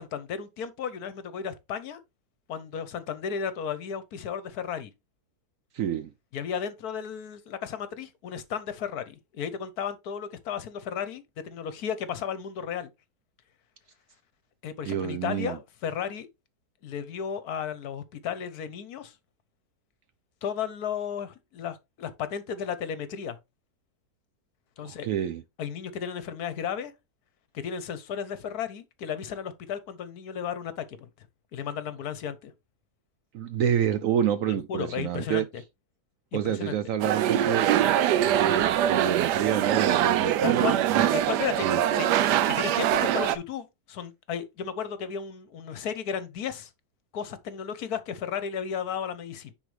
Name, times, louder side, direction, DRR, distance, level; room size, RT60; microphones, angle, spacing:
voice 1, 0.0-2.0 2.5-4.9 6.3-12.9 14.6-16.3 16.8-19.1 20.4-23.4 24.8-25.1 25.6-26.9 27.5-31.1 31.5-32.5 34.5-35.6 36.3-36.8 40.4-40.8 41.1-41.7 41.9-46.7 47.1-49.5, left 7 dB, 65° left, 1.3 m, -34 dB
voice 2, 5.7-6.1 14.8-15.6 24.8-25.4 33.3-35.5 36.3-38.0 38.3-41.1 41.6-41.8, right 9 dB, 65° right, 0.8 m, -28 dB
sound 1, 37.0-43.4, right 11 dB, 85° right, 1.2 m, -23 dB
9.7 x 4.2 x 3.2 m
omnidirectional pair, 1.8 m